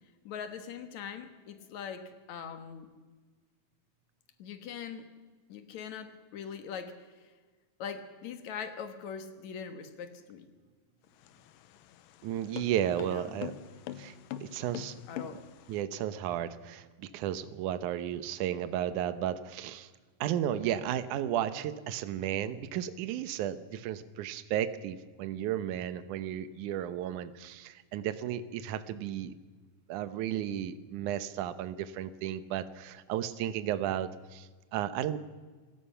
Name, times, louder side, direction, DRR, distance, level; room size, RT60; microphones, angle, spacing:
voice 1, 0.2-2.9 4.4-5.1 5.5-7.3 7.8-10.5 13.0-13.3 15.1-15.5, left 7 dB, 60° left, 8 dB, 2.6 m, -42 dB
sound 1, 11.1-15.8, left 11 dB, 90° left, 2.5 m, -44 dB
voice 2, 12.2-13.6 14.0-14.1 14.4-15.3 15.7-19.9 20.2-29.4 29.9-35.2, right 11 dB, 70° right, 13 dB, 2.3 m, -34 dB
27.0 x 17.0 x 5.7 m, 1.4 s
omnidirectional pair, 3.9 m